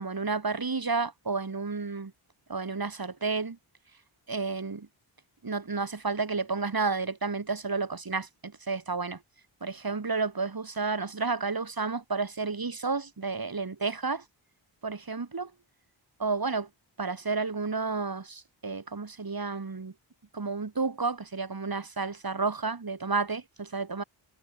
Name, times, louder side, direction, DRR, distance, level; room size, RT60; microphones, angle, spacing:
voice 1, 0.0-2.1 2.5-3.6 4.3-4.9 5.4-9.2 9.6-14.2 14.8-15.5 16.2-16.7 17.0-19.9 20.3-24.0, right 4 dB, 50° right, 6.8 m, -31 dB
wide cardioid pair, 95°, 47 cm